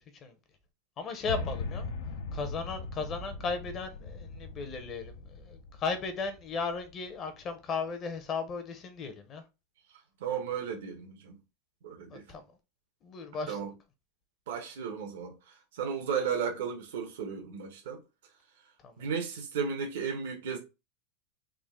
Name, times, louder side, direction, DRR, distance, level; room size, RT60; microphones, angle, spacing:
voice 1, 1.0-1.9 2.3-9.4 12.1-12.4 13.0-13.6 18.8-18.9, left 4 dB, 30° left, 0.7 m, -36 dB
sound 1, 1.2-7.4, left 3 dB, 70° left, 0.6 m, -40 dB
voice 2, 10.2-11.4 11.8-12.2 13.5-13.7 14.5-15.3 15.7-18.0 19.0-20.6, right 6 dB, 80° right, 1.1 m, -34 dB
3.7 x 2.4 x 3.6 m
supercardioid pair, 145°, 0 cm